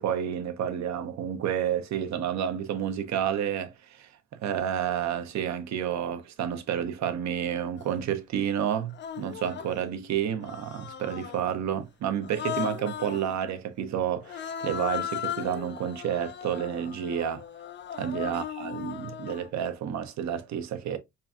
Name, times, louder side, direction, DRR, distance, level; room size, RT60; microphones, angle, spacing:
voice 1, 0.0-17.4 18.0-21.0, right 9 dB, 65° right, 0.8 m, -30 dB
Human voice, 7.8-7.9 8.9-9.8 10.4-11.5 12.2-13.3 14.2-19.5, left 10 dB, 40° left, 0.4 m, -37 dB
5.6 x 2.4 x 2.3 m
cardioid pair, 90°, 30 cm